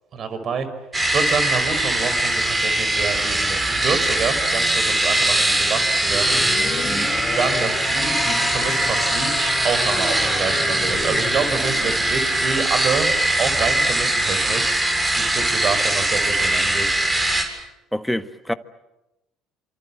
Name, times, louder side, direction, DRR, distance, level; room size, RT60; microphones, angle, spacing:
voice 1, 0.1-0.7 1.0-6.4 7.3-13.1 13.4-14.7 15.1-16.9, right 5 dB, 50° right, 5.4 m, -27 dB
sound 1, 0.9-17.4, right 1 dB, 20° right, 7.3 m, -21 dB
sound 2, 6.1-12.0, left 6 dB, 45° left, 3.6 m, -31 dB
voice 2, 17.9-18.5, equal, 5° left, 1.6 m, -26 dB
27.0 x 27.0 x 7.6 m
hypercardioid pair, 60°, 0 cm